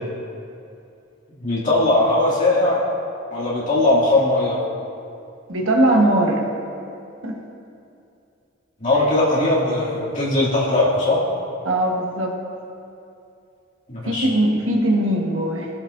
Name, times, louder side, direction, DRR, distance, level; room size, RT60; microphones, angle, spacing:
voice 1, 1.4-2.8 3.3-4.6 8.8-11.2 13.9-14.3, left 2 dB, 40° left, -9 dB, 2.5 m, -19 dB
voice 2, 5.5-6.5 7.2-7.4 11.6-12.3 14.0-15.7, right 1 dB, 70° right, 0 dB, 1.2 m, -20 dB
17.5 x 7.4 x 2.6 m, 2.6 s
head